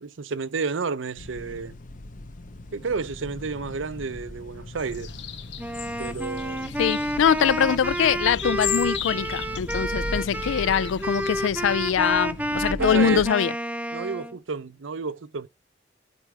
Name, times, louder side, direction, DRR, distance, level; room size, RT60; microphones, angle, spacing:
voice 1, 0.0-1.8 2.7-5.1 6.0-6.7 12.7-13.3 13.9-15.5, right 4 dB, 80° right, 0.6 m, -31 dB
sound 1, 1.2-13.3, left 1 dB, 45° left, 0.8 m, -39 dB
sound 2, 4.8-11.3, left 10 dB, 65° left, 1.1 m, -36 dB
Wind instrument woodwind instrument, 5.6-14.4, right 1 dB, 10° right, 0.5 m, -30 dB
voice 2, 6.8-13.5, left 8 dB, 80° left, 0.4 m, -23 dB
13.0 x 4.8 x 3.3 m
head